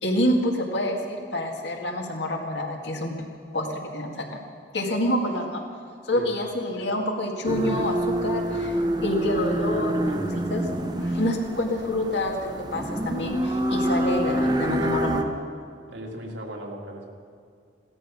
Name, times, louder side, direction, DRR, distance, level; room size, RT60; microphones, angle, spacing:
voice 1, 0.0-3.2 3.5-4.4 4.7-5.6 6.0-10.7 11.0-15.4, left 1 dB, 70° left, 2 dB, 2.1 m, -27 dB
sound 1, 7.5-15.2, right 1 dB, 25° right, 0.8 m, -27 dB
voice 2, 15.9-17.1, equal, 80° right, 1 dB, 2.2 m, -37 dB
16.0 x 13.0 x 6.3 m, 2.3 s
head